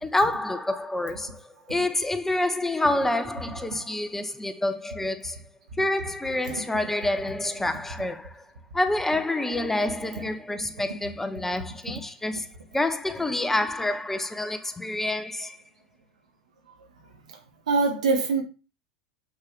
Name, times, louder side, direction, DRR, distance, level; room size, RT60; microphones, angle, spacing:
voice 1, 0.0-5.4 5.8-8.5 8.7-12.5 12.7-15.6, left 1 dB, 10° left, 0.7 m, -27 dB
voice 2, 17.7-18.4, right 4 dB, 70° right, 2.3 m, -23 dB
7.3 x 6.4 x 3.6 m
figure-of-eight pair, 85°, 4 cm